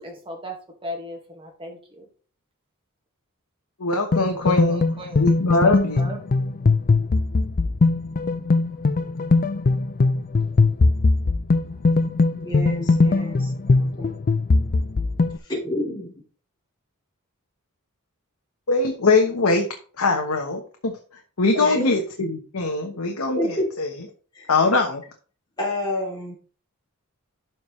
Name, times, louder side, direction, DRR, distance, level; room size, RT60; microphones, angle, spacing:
voice 1, 0.0-2.0 4.3-5.3 5.9-6.2 12.8-13.9, equal, 25° right, 1.8 m, -38 dB
voice 2, 3.8-4.8 5.1-6.0 18.7-19.7 20.0-21.0 21.4-23.9 24.5-25.0, left 3 dB, 70° left, 1.1 m, -22 dB
sound 1, 4.1-15.4, left 3 dB, 40° left, 0.5 m, -20 dB
voice 3, 12.4-13.4 14.0-14.1 15.4-16.1 21.5-21.9 22.9-23.0 23.3-23.8 24.3-24.5 25.6-26.3, left 1 dB, 20° left, 3.4 m, -28 dB
12.0 x 4.7 x 3.2 m
head